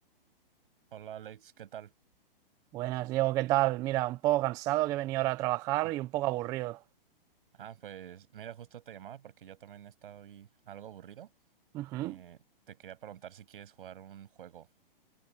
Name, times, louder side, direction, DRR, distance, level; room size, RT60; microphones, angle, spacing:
voice 1, 0.9-1.9 5.8-5.9 7.5-11.3 12.0-14.7, right 10 dB, 65° right, 6.4 m, -48 dB
voice 2, 2.7-6.8 11.7-12.2, right 17 dB, 10° right, 0.3 m, -29 dB
hypercardioid pair, 140°, 29 cm